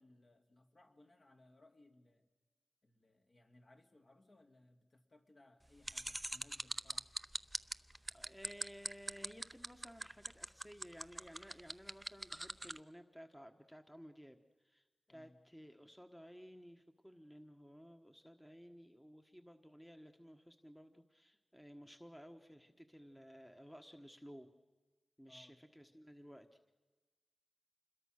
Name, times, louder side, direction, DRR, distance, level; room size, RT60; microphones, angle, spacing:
voice 1, 0.0-2.3 2.8-7.1 15.1-15.4 25.3-25.6, left 2 dB, 45° left, 4 dB, 2.7 m, -65 dB
sound 1, 5.8-12.8, right 1 dB, 10° right, 0.7 m, -41 dB
voice 2, 8.1-24.5 25.2-26.7, equal, 5° left, 5 dB, 1.4 m, -56 dB
27.5 x 21.5 x 6.5 m, 1.2 s
wide cardioid pair, 80°, 0 cm